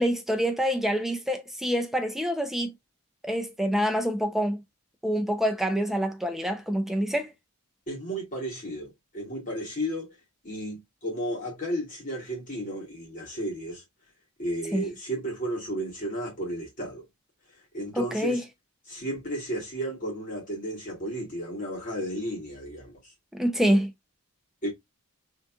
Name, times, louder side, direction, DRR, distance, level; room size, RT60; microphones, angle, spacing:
voice 1, 0.0-2.7 3.2-4.6 5.0-7.3 14.7-14.9 18.0-18.4 23.3-23.9, equal, ahead, 0.6 m, -26 dB
voice 2, 7.9-10.2 10.4-13.8 14.4-17.0 17.7-18.4 18.9-23.0 24.6-24.7, equal, 35° left, 2.6 m, -33 dB
4.1 x 3.6 x 2.6 m
head